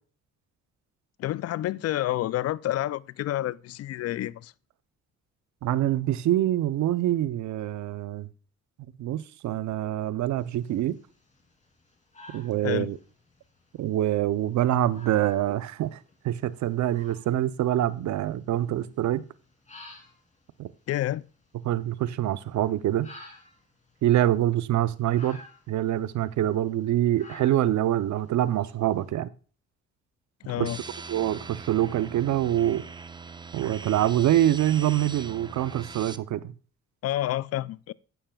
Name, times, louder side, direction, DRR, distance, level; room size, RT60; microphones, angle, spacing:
voice 1, 1.2-4.5 12.6-12.9 20.9-21.2 30.5-30.8 37.0-37.9, left 14 dB, 55° left, 0.4 m, -29 dB
voice 2, 5.6-8.3 9.0-11.0 12.3-13.0 13.8-16.0 16.2-19.2 20.6-20.7 21.6-23.1 24.0-25.4 25.7-29.3 30.6-30.7 31.1-32.8 33.5-36.5, right 13 dB, 70° right, 0.7 m, -25 dB
sound 1, 10.4-29.1, left 2 dB, 25° left, 2.9 m, -54 dB
sound 2, 30.7-36.2, right 4 dB, 15° right, 0.5 m, -41 dB
11.5 x 9.0 x 2.3 m
cardioid pair, 90°, 30 cm